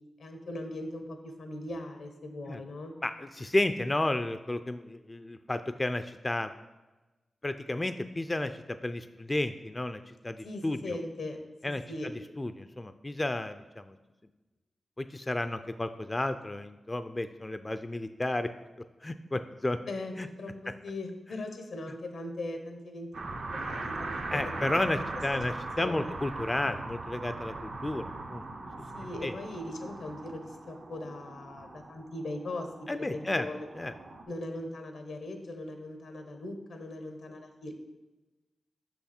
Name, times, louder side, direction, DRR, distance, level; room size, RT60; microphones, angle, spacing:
voice 1, 0.2-3.0 10.4-11.4 11.6-12.1 19.9-24.4 25.0-25.1 25.8-26.1 28.9-32.7 33.1-33.7 34.3-37.7, left 1 dB, 85° left, 5 dB, 1.0 m, -39 dB
voice 2, 3.0-6.5 7.4-11.0 11.6-11.8 12.4-13.9 15.0-18.5 19.0-19.8 20.2-20.3 24.3-28.5 29.2-29.3 32.9-33.5 33.8-33.9, left 1 dB, 25° left, 10 dB, 0.3 m, -32 dB
sound 1, 23.1-34.2, right 2 dB, 85° right, 1.0 m, -40 dB
5.9 x 5.8 x 4.3 m, 1.1 s
cardioid pair, 55°, 0 cm